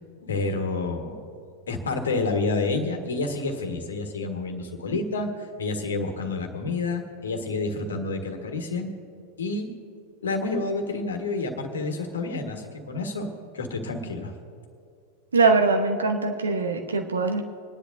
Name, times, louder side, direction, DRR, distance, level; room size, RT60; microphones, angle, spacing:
voice 1, 0.2-1.2 1.7-8.9 9.4-9.7 10.2-14.3, left 3 dB, 70° left, 4 dB, 1.7 m, -29 dB
voice 2, 15.3-17.5, right 4 dB, 70° right, 5 dB, 1.1 m, -22 dB
27.0 x 10.5 x 2.8 m, 2.4 s
figure-of-eight pair, 90°, 0 cm